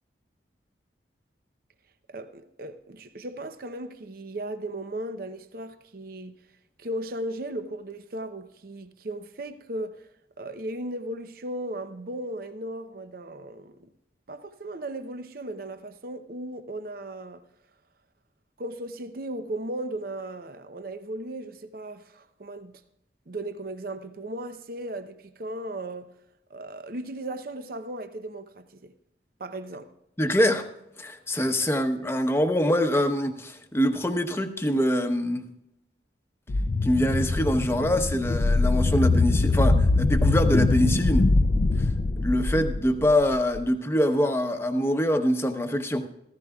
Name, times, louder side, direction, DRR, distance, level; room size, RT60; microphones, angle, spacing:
voice 1, 2.1-6.4 6.8-10.1 10.4-13.9 14.3-17.4 18.6-22.7 23.3-26.1 26.5-28.9 29.4-29.9 31.3-31.5, right 1 dB, 50° right, 0.7 m, -36 dB
voice 2, 30.2-30.7 31.0-35.4 36.8-41.3 41.8-41.9 42.2-46.1, equal, 15° left, 0.9 m, -24 dB
sound 1, 36.5-43.6, left 2 dB, 45° left, 0.5 m, -23 dB
15.0 x 14.5 x 2.3 m
head